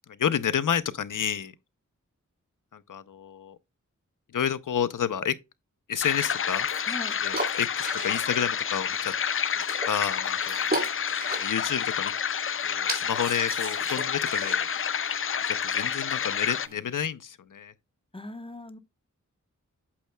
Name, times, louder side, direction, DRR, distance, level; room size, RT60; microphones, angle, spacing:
voice 1, 0.1-1.5 2.7-3.6 4.3-5.3 5.9-6.7 7.2-9.1 9.9-10.8 11.4-12.1 12.6-14.7 15.4-17.7, left 8 dB, 85° left, 0.7 m, -30 dB
sound 1, 6.0-16.7, left 7 dB, 45° left, 0.4 m, -29 dB
sound 2, 6.2-16.8, right 1 dB, 30° right, 3.9 m, -38 dB
voice 2, 18.1-18.8, left 2 dB, 15° left, 1.0 m, -39 dB
8.6 x 7.4 x 2.2 m
wide cardioid pair, 80°, 31 cm